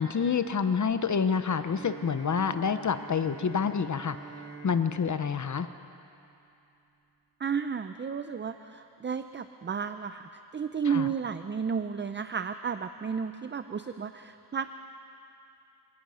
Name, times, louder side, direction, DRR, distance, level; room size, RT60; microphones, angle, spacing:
voice 1, 0.0-4.2 4.6-5.7 10.9-11.1, left 6 dB, 45° left, 10 dB, 0.8 m, -28 dB
Bowed string instrument, 1.6-6.5, right 5 dB, 60° right, 5.9 m, -47 dB
voice 2, 7.4-14.7, right 6 dB, 30° right, 10 dB, 0.5 m, -32 dB
26.5 x 18.5 x 5.6 m, 2.8 s
wide cardioid pair, 110°, 40 cm